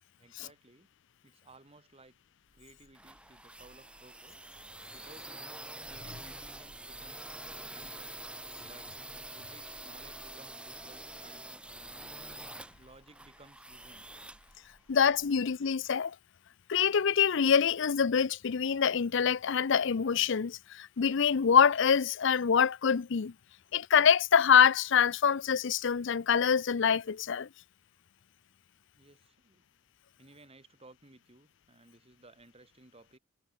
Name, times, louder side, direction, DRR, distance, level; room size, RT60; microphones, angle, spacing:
voice 1, 0.2-0.9 1.2-2.1 2.5-4.5 4.9-5.5 5.9-8.2 8.6-8.9 9.3-11.5 12.7-14.1 28.9-29.6 30.2-33.2, right 2 dB, 30° right, 2.6 m, -58 dB
sound 1, 2.5-15.3, right 2 dB, 5° right, 1.2 m, -46 dB
voice 2, 14.9-16.1 16.7-23.3 23.7-27.5, left 7 dB, 65° left, 0.5 m, -25 dB
head